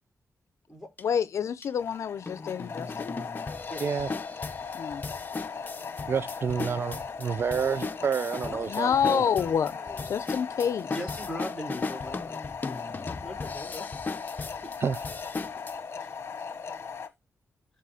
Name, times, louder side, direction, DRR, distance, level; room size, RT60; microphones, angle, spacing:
voice 1, 1.0-3.1 4.7-5.0 8.7-9.8 10.0-10.9, left 8 dB, 75° left, 0.5 m, -28 dB
sound 1, 1.0-1.1 1.6-1.7 2.3-15.7, left 3 dB, 35° left, 0.8 m, -38 dB
sound 2, 1.8-17.1, left 5 dB, 50° left, 1.2 m, -38 dB
voice 2, 6.1-9.2 14.8-15.0, right 6 dB, 50° right, 0.4 m, -29 dB
voice 3, 8.4-12.4 13.2-13.9 14.6-14.7 16.0-16.1, equal, 5° left, 4.1 m, -41 dB
7.5 x 4.1 x 5.6 m
wide cardioid pair, 105°, 5 cm